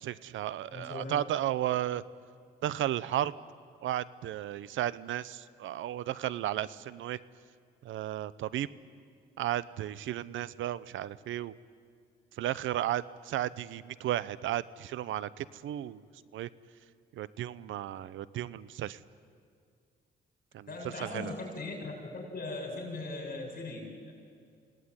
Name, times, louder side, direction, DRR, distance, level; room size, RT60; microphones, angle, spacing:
voice 1, 0.0-2.0 2.6-3.3 3.8-7.2 7.8-8.7 9.4-11.5 12.4-16.0 16.3-16.5 17.1-19.0 20.5-21.3, right 12 dB, 80° right, 18 dB, 0.8 m, -34 dB
voice 2, 0.7-1.1 20.7-24.1, left 2 dB, 45° left, 0 dB, 7.8 m, -39 dB
27.5 x 18.0 x 9.8 m, 2.1 s
cardioid pair, 90°, 20 cm